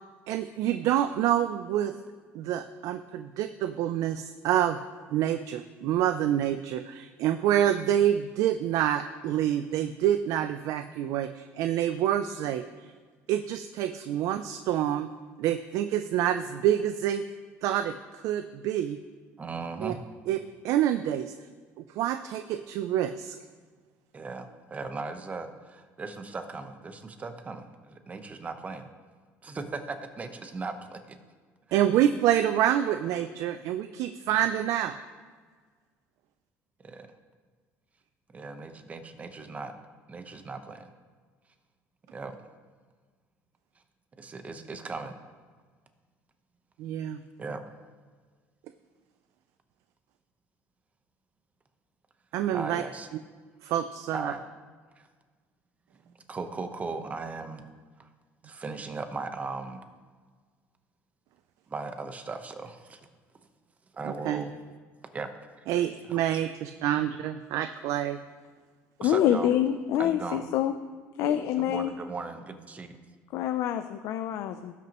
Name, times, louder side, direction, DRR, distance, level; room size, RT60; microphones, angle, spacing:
voice 1, 0.3-1.9 2.3-4.8 5.1-12.9 13.3-15.1 15.4-17.2 17.6-19.0 19.8-19.9 20.3-20.4 20.6-21.3 21.9-23.4 31.7-35.0 46.8-47.2 52.3-52.8 53.6-54.3 64.2-64.4 65.7-68.2, right 11 dB, 70° right, 10 dB, 0.4 m, -27 dB
voice 2, 19.4-20.0 24.1-28.9 29.4-31.2 31.7-32.0 36.8-37.1 38.3-39.7 40.1-40.9 42.1-42.4 44.2-45.2 47.4-47.6 52.5-53.1 54.1-54.4 55.0-55.1 56.0-57.6 58.0-58.1 58.4-59.8 61.7-63.0 63.9-64.5 65.1-65.8 66.1-66.2 69.0-69.5 70.0-70.4 71.6-73.0, right 4 dB, 25° right, 7 dB, 1.0 m, -38 dB
voice 3, 69.0-70.7 71.2-71.9 73.3-74.7, left 11 dB, 70° left, 8 dB, 0.5 m, -26 dB
18.0 x 6.0 x 3.0 m, 1.5 s
cardioid pair, 105°, 6 cm